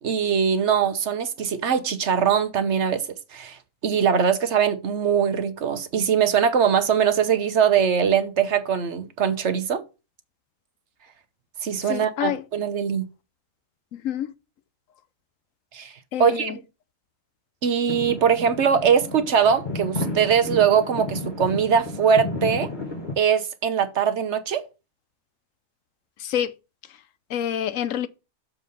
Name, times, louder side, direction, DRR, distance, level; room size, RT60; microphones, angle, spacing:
voice 1, 0.0-3.0 3.3-9.8 11.6-13.0 15.7-15.9 16.2-16.6 17.6-22.7 23.2-24.6, right 7 dB, 60° right, 1.2 m, -22 dB
voice 2, 11.9-12.4 13.9-14.3 16.1-16.6 26.2-26.5 27.3-28.1, left 10 dB, 75° left, 1.1 m, -27 dB
sound 1, 17.9-23.1, left 2 dB, 35° left, 1.7 m, -32 dB
7.2 x 4.6 x 5.5 m
omnidirectional pair, 1.4 m